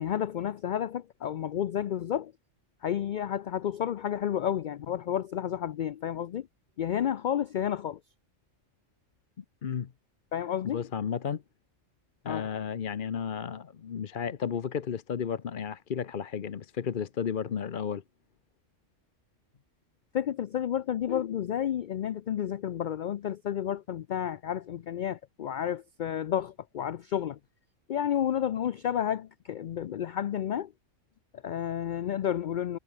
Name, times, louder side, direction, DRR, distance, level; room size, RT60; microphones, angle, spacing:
voice 1, 0.0-2.3 2.8-6.5 6.8-8.0 10.3-10.9 12.3-12.5 20.1-27.4 27.9-30.7 31.3-32.8, left 10 dB, 65° left, 0.4 m, -31 dB
voice 2, 9.4-9.9 10.6-11.4 12.2-18.0, left 7 dB, 45° left, 0.9 m, -33 dB
omnidirectional pair, 1.3 m